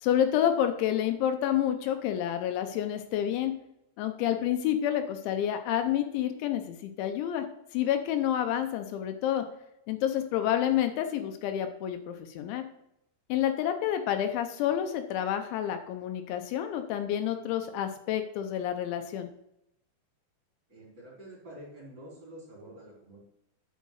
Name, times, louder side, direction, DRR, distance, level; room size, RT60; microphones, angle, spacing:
voice 1, 0.0-3.5 4.0-7.5 7.7-9.4 9.9-12.7 13.3-19.3, left 10 dB, 80° left, 7 dB, 3.0 m, -29 dB
voice 2, 20.7-23.2, right 1 dB, 30° right, -6 dB, 3.3 m, -48 dB
9.2 x 5.1 x 6.3 m, 0.81 s
omnidirectional pair, 5.4 m